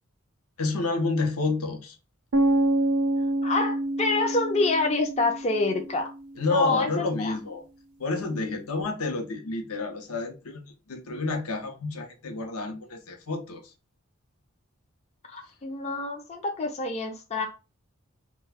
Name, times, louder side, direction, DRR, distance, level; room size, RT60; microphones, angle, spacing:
voice 1, 0.6-2.0 6.4-7.6 8.0-13.7, left 3 dB, 80° left, 0.6 m, -29 dB
sound 1, 2.3-6.2, right 1 dB, 85° right, 0.5 m, -27 dB
voice 2, 3.4-6.1 6.5-7.4 15.3-17.5, left 3 dB, 30° left, 0.4 m, -27 dB
2.3 x 2.2 x 3.3 m
head